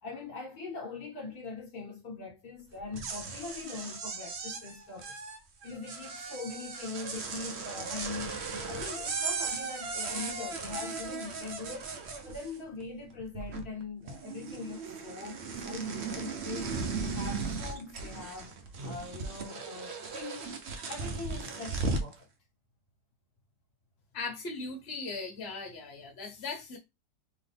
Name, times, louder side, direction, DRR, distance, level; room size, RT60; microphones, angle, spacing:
voice 1, 0.0-5.2 5.6-11.9 12.2-16.7 17.0-18.5 18.8-22.3, left 4 dB, 55° left, 1.8 m, -42 dB
sound 1, 2.8-12.8 13.1-13.8 14.1-22.1, right 4 dB, 55° right, 0.7 m, -37 dB
voice 2, 24.1-26.8, left 3 dB, 40° left, 1.4 m, -38 dB
3.8 x 3.1 x 3.4 m
omnidirectional pair, 2.0 m